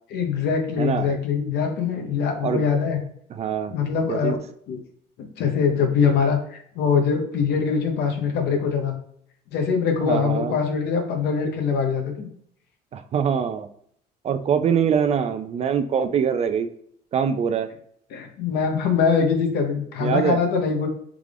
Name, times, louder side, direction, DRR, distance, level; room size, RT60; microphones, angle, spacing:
voice 1, 0.1-3.0 3.7-4.4 4.7-4.8 5.4-8.9 9.5-12.3 18.1-20.9, left 6 dB, 75° left, 4 dB, 0.8 m, -23 dB
voice 2, 0.8-1.1 2.4-2.6 3.3-3.7 4.1-4.4 10.0-10.5 12.9-13.7 14.2-16.7 17.1-17.7 20.0-20.4, right 7 dB, 40° right, 9 dB, 0.3 m, -23 dB
3.6 x 2.4 x 3.3 m, 0.66 s
cardioid pair, 110°, 17 cm